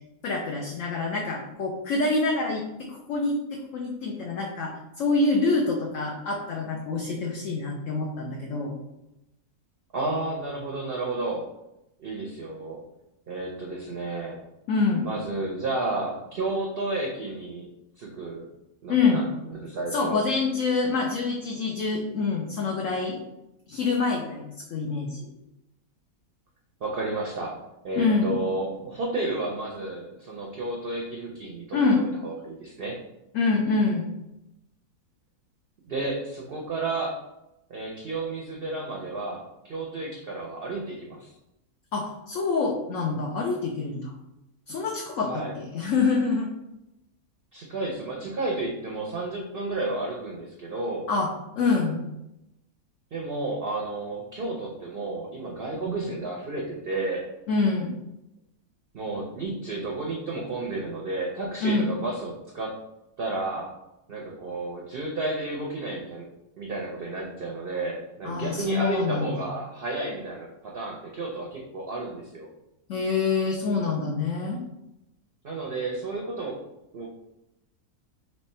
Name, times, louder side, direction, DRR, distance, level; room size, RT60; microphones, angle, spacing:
voice 1, 0.2-8.7 14.7-15.1 18.9-19.2 19.9-23.2 23.7-25.3 28.0-28.4 31.7-32.0 33.3-34.1 41.9-44.1 44.7-46.5 51.1-51.3 51.6-52.0 57.5-57.9 61.6-61.9 68.2-69.3 72.9-74.6, left 4 dB, 65° left, 0 dB, 0.9 m, -26 dB
voice 2, 9.9-11.4 12.0-12.8 13.3-14.4 15.0-17.7 18.0-18.5 18.8-20.2 26.8-27.5 27.8-33.0 35.9-37.2 37.7-41.3 45.2-45.6 47.5-51.1 53.1-57.2 58.9-62.8 63.2-63.7 64.1-66.3 66.6-72.5 75.4-76.6 76.9-77.1, right 2 dB, 55° right, -1 dB, 0.6 m, -32 dB
3.3 x 3.1 x 4.2 m, 0.89 s
omnidirectional pair, 1.6 m